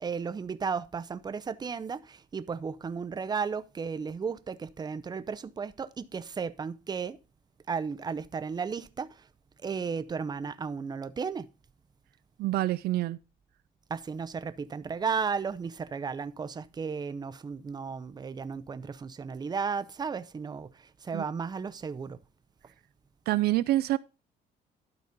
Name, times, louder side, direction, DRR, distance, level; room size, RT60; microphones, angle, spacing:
voice 1, 0.0-7.2 7.7-9.1 9.6-11.5 13.9-22.2, right 5 dB, 25° right, 0.6 m, -34 dB
voice 2, 12.4-13.2 21.1-21.2 23.3-24.0, right 16 dB, 70° right, 0.4 m, -26 dB
12.0 x 4.1 x 5.1 m
cardioid pair, 110°, 17 cm